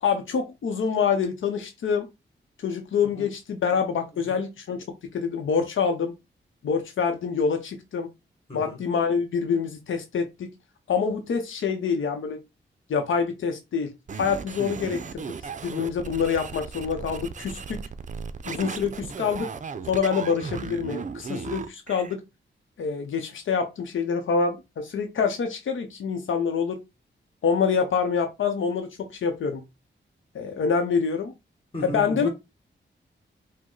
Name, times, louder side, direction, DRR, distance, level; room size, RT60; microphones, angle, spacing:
voice 1, 0.0-2.1 2.6-4.8 5.1-6.1 6.6-8.1 8.5-10.5 10.9-12.4 12.9-13.9 14.2-15.3 15.6-17.8 18.4-19.5 19.9-22.2 22.8-26.8 27.4-29.6 30.3-31.3 31.8-32.3, left 6 dB, 85° left, 0.7 m, -26 dB
sound 1, 14.1-22.1, right 5 dB, 40° right, 0.5 m, -36 dB
voice 2, 31.7-32.3, equal, 30° left, 1.9 m, -35 dB
5.0 x 2.1 x 3.8 m
wide cardioid pair, 115°, 20 cm